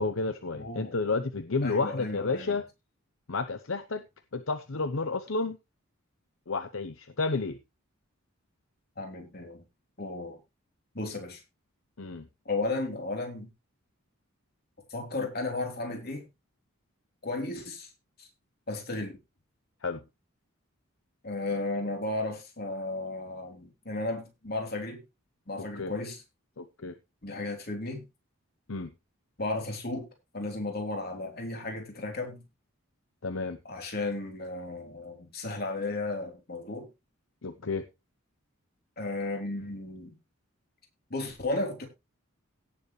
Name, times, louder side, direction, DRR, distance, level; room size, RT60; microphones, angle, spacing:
voice 1, 0.0-2.6 3.3-4.0 4.3-5.6 6.5-7.6 12.0-12.2 19.8-20.0 25.7-25.9 26.6-26.9 28.7-28.9 33.2-33.6 37.4-37.8, left 3 dB, 70° left, 10 dB, 0.9 m, -31 dB
voice 2, 0.6-1.0 1.6-2.6 9.0-9.6 10.0-10.4 10.9-11.4 12.5-13.5 14.9-16.3 17.2-17.9 18.2-18.3 18.7-19.2 21.2-25.0 25.5-26.2 27.2-28.1 29.4-30.1 30.3-32.4 33.6-36.9 39.0-40.1 41.1-41.9, left 2 dB, 45° left, 2 dB, 3.7 m, -34 dB
17.0 x 7.1 x 3.2 m, 0.25 s
head